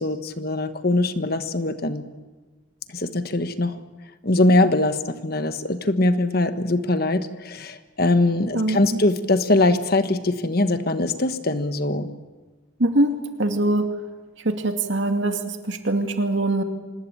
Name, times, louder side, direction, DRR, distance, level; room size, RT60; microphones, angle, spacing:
voice 1, 0.0-2.1 2.9-3.8 4.2-12.1, left 2 dB, 50° left, 10 dB, 1.4 m, -22 dB
voice 2, 8.5-9.0 12.8-13.1 13.4-13.9 14.4-16.6, right 2 dB, 65° right, 6 dB, 2.4 m, -22 dB
26.0 x 20.0 x 8.8 m, 1.3 s
head